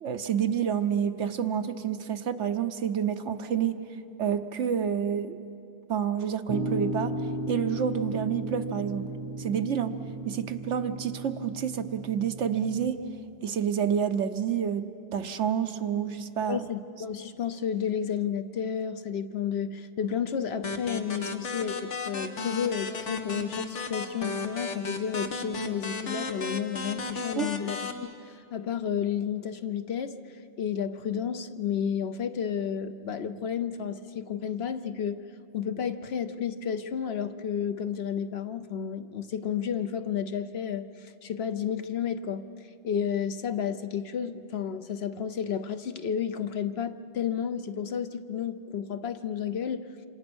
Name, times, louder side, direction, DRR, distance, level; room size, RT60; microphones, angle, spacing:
voice 1, 0.0-3.8 4.2-5.4 5.9-7.2 7.5-9.1 9.4-10.0 10.3-13.0 13.4-16.6 27.4-27.5, right 8 dB, 85° right, 8 dB, 1.3 m, -28 dB
sound 1, 6.5-12.9, right 1 dB, 30° right, 0.8 m, -35 dB
voice 2, 16.5-30.2 30.6-35.3 35.5-42.5 42.8-49.9, left 8 dB, 65° left, 10 dB, 1.0 m, -31 dB
sound 2, 20.6-27.9, left 3 dB, 85° left, 1.6 m, -34 dB
27.5 x 26.5 x 6.2 m, 2.7 s
omnidirectional pair, 1.2 m